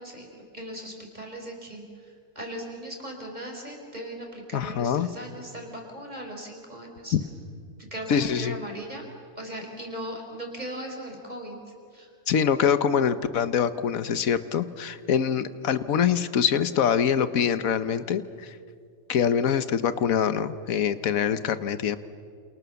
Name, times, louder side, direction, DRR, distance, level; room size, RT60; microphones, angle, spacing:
voice 1, 0.0-7.1 7.9-9.0 9.4-11.6 11.9-12.1, right 1 dB, 30° right, 1 dB, 5.1 m, -38 dB
voice 2, 4.5-5.1 8.1-8.6 12.3-18.6 19.1-22.0, left 7 dB, 75° left, 12 dB, 1.4 m, -24 dB
29.0 x 28.5 x 7.1 m, 2.2 s
omnidirectional pair, 1.4 m